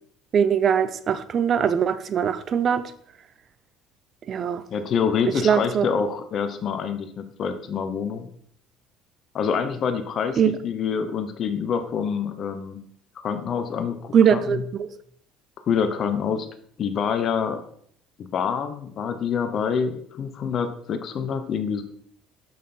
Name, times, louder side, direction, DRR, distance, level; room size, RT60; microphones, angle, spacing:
voice 1, 0.3-2.9 4.3-4.6 5.4-5.9 10.4-10.5 14.1-14.9, right 8 dB, 45° right, 13 dB, 0.6 m, -21 dB
voice 2, 4.7-8.3 9.3-12.8 13.2-14.6 15.6-16.5 16.8-17.6 18.2-21.8, left 6 dB, 50° left, 9 dB, 0.9 m, -26 dB
6.0 x 6.0 x 4.3 m, 0.64 s
hypercardioid pair, 70°, 0 cm